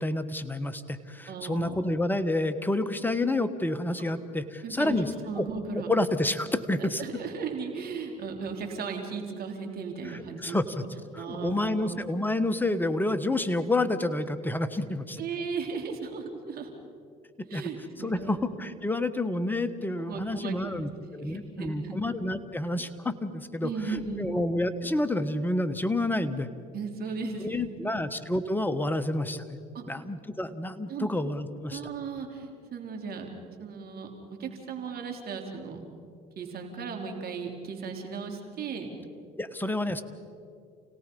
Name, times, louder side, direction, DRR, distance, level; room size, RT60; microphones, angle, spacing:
voice 1, 0.0-5.1 5.4-5.5 5.7-7.0 10.1-10.8 11.1-15.2 17.5-17.6 18.0-26.5 27.4-29.4 29.9-31.8 39.4-40.0, left 2 dB, 10° left, 11 dB, 1.4 m, -29 dB
voice 2, 1.3-1.8 4.6-5.9 6.8-10.6 11.2-12.0 15.2-16.7 17.5-18.4 20.1-20.9 21.2-22.0 23.6-24.3 26.7-28.0 29.7-29.8 30.9-31.1 31.7-33.3 33.6-34.1 34.4-35.8 36.4-38.9, right 5 dB, 50° right, 3 dB, 3.4 m, -36 dB
29.5 x 17.5 x 5.4 m, 2.3 s
hypercardioid pair, 75°, 20 cm